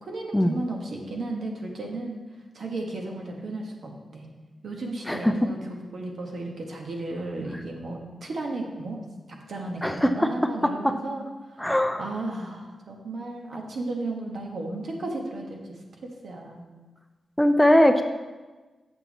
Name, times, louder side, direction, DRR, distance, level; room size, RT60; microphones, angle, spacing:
voice 1, 0.0-2.2 2.5-4.3 4.6-11.7 12.0-16.6, right 2 dB, 65° right, 1 dB, 1.3 m, -34 dB
voice 2, 9.8-10.3 11.6-12.0 17.4-18.0, left 1 dB, 5° left, 7 dB, 0.5 m, -20 dB
7.1 x 6.9 x 4.1 m, 1.2 s
cardioid pair, 80°, 0 cm